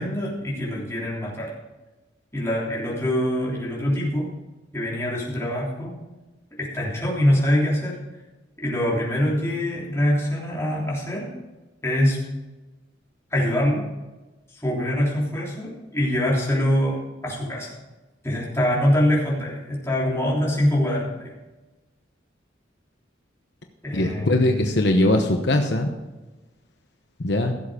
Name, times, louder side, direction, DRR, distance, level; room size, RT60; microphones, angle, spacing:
voice 1, 0.0-1.5 2.3-4.3 4.7-6.0 6.6-8.0 8.6-11.3 11.8-12.2 13.3-13.8 14.5-17.0 17.2-17.7 18.2-21.3 23.8-24.7, left 1 dB, 15° left, -5 dB, 3.3 m, -24 dB
voice 2, 23.9-25.9 27.2-27.5, left 1 dB, 60° left, 4 dB, 1.0 m, -21 dB
16.0 x 7.5 x 5.0 m, 1.2 s
head